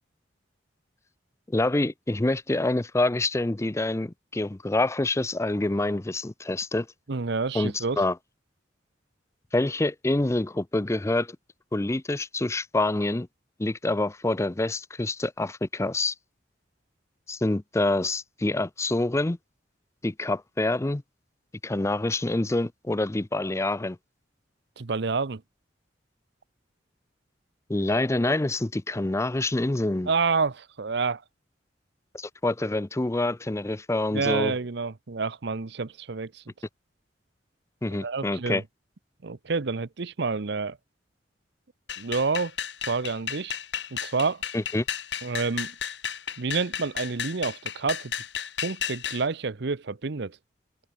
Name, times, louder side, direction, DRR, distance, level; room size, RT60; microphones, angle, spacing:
voice 1, 1.5-6.9 7.5-8.2 9.5-11.4 11.7-13.3 13.6-16.1 17.3-19.4 20.0-21.0 21.6-24.0 27.7-30.1 32.1-34.5 37.8-38.6 44.5-44.8, left 2 dB, 15° left, 0.5 m, -26 dB
voice 2, 7.1-8.0 24.8-25.4 30.1-31.2 34.1-36.4 38.0-38.6 39.2-40.8 42.0-42.5 42.9-43.5 43.9-44.4 45.2-45.7 46.4-48.1 48.6-50.4, right 4 dB, 65° right, 0.8 m, -28 dB
sound 1, 41.9-49.2, left 8 dB, 70° left, 4.8 m, -33 dB
open air
head